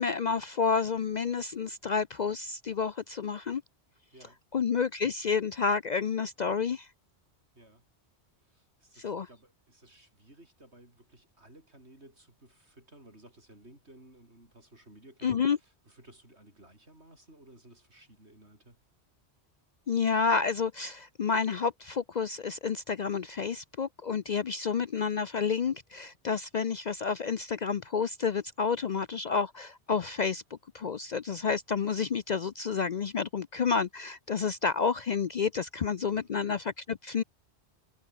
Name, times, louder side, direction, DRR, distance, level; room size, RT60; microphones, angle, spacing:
voice 1, 0.0-3.6 4.5-6.9 9.0-9.3 15.2-15.6 19.9-30.4 30.7-37.2, left 5 dB, 50° left, 0.6 m, -30 dB
voice 2, 7.5-7.9 8.4-18.8 36.0-36.3, right 1 dB, 70° right, 7.8 m, -56 dB
omnidirectional pair, 1.2 m